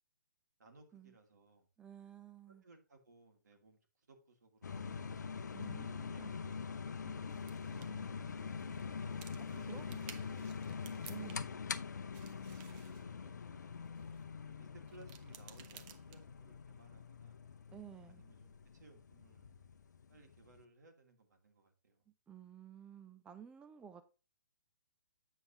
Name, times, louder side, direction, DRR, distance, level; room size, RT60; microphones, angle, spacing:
voice 1, 0.6-1.7 2.6-5.1 6.0-6.9 8.2-8.5 9.5-11.3 12.5-13.8 14.5-17.4 18.1-19.5 20.1-22.1, right 3 dB, 65° right, 2.4 m, -63 dB
voice 2, 1.8-2.6 5.5-6.3 7.0-7.4 7.7-8.9 9.4-10.1 11.1-11.5 17.7-18.2 22.1-24.1, right 8 dB, 10° right, 0.4 m, -55 dB
sound 1, 4.6-20.6, left 5 dB, 65° left, 0.6 m, -44 dB
sound 2, 7.3-11.7 11.9-14.3 14.8-16.5, right 9 dB, 25° right, 0.8 m, -58 dB
8.2 x 7.0 x 2.9 m
figure-of-eight pair, 125°, 10 cm